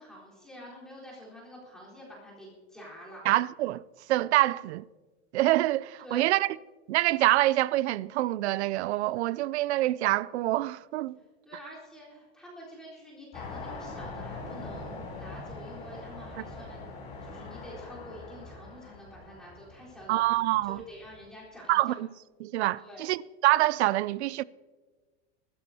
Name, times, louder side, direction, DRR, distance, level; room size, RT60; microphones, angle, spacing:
voice 1, 0.0-3.2 6.0-6.4 11.4-16.9 17.2-22.0 22.8-23.0, equal, ahead, 4.0 m, -47 dB
voice 2, 3.3-3.8 4.1-4.9 5.3-6.6 6.9-11.2 20.1-20.8 21.7-22.1 22.4-23.2 23.4-24.4, right 16 dB, 80° right, 0.5 m, -26 dB
sound 1, 13.3-21.3, left 3 dB, 20° left, 3.5 m, -43 dB
22.5 x 13.0 x 2.8 m
supercardioid pair, 175°, 33 cm